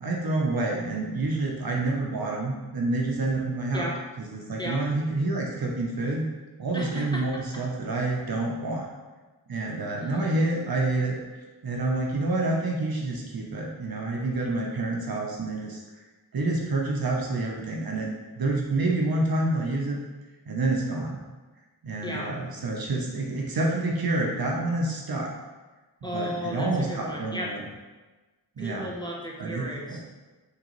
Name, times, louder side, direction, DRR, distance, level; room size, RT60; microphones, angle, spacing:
voice 1, 0.0-3.9 4.2-6.3 6.6-8.9 9.5-11.1 11.6-15.8 16.3-20.0 20.5-21.2 21.8-25.3 26.0-27.6 28.6-28.9 29.4-30.0, right 2 dB, 55° right, -1 dB, 0.7 m, -28 dB
voice 2, 6.7-7.2 7.5-7.6 10.0-10.3 22.0-22.3 26.0-27.5 28.6-30.0, equal, 10° left, -3 dB, 0.7 m, -34 dB
3.8 x 3.0 x 3.0 m, 1.2 s
cardioid pair, 45°, 42 cm